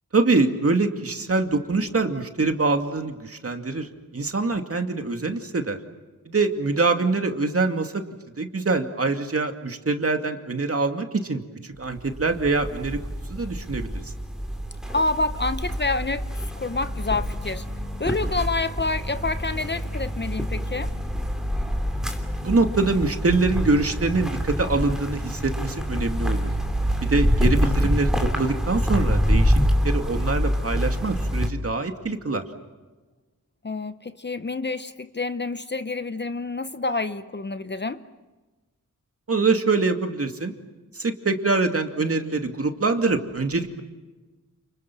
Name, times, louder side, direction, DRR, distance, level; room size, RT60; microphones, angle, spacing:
voice 1, 0.1-5.8 6.3-8.0 8.4-13.0 13.3-14.0 22.4-26.5 27.0-29.6 29.8-32.4 39.3-40.5 41.0-43.8, right 3 dB, 45° right, 2.3 m, -24 dB
sound 1, 11.8-31.5, equal, ahead, 3.0 m, -26 dB
voice 2, 14.9-16.3 16.6-17.6 18.0-20.9 33.6-38.0, left 3 dB, 35° left, 0.9 m, -28 dB
30.0 x 28.5 x 6.2 m
wide cardioid pair, 120°, 33 cm